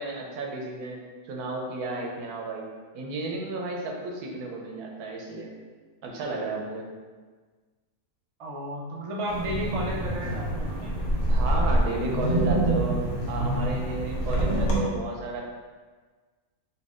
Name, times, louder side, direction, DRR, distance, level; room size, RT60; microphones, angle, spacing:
voice 1, 0.0-5.5 6.0-6.9 11.3-15.4, right 2 dB, 85° right, 0 dB, 1.2 m, -33 dB
voice 2, 8.4-10.9, equal, 55° right, -2 dB, 0.3 m, -33 dB
Wind, 9.3-14.8, right 1 dB, 75° left, 1.4 m, -26 dB
4.4 x 2.8 x 3.6 m, 1.4 s
omnidirectional pair, 1.6 m